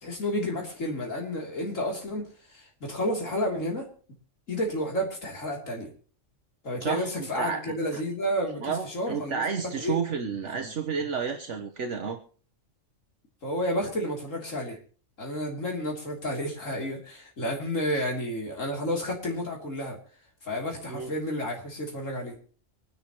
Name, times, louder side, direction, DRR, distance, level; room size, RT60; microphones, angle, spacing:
voice 1, 0.0-3.9 4.5-5.9 6.6-9.4 9.8-10.0 10.5-10.7 13.4-14.8 15.2-20.0 20.4-22.4, equal, 75° left, 0 dB, 3.6 m, -31 dB
voice 2, 6.8-8.0 8.6-12.2 17.9-18.1 20.9-21.1, right 6 dB, 65° right, 5 dB, 1.3 m, -31 dB
24.5 x 10.5 x 3.0 m, 0.42 s
omnidirectional pair, 1.4 m